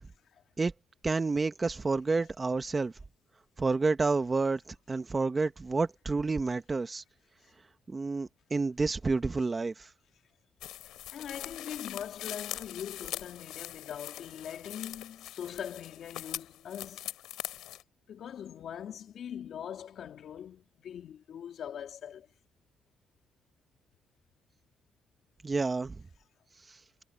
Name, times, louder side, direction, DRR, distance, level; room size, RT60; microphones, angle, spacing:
voice 1, 1.0-2.9 3.6-7.0 7.9-9.9 25.4-26.0, right 3 dB, 25° right, 1.7 m, -29 dB
sound 1, 10.6-17.8, left 14 dB, 90° left, 3.6 m, -42 dB
voice 2, 11.1-17.1 18.1-22.3, left 9 dB, 65° left, 3.6 m, -42 dB
cardioid pair, 90°, 0 cm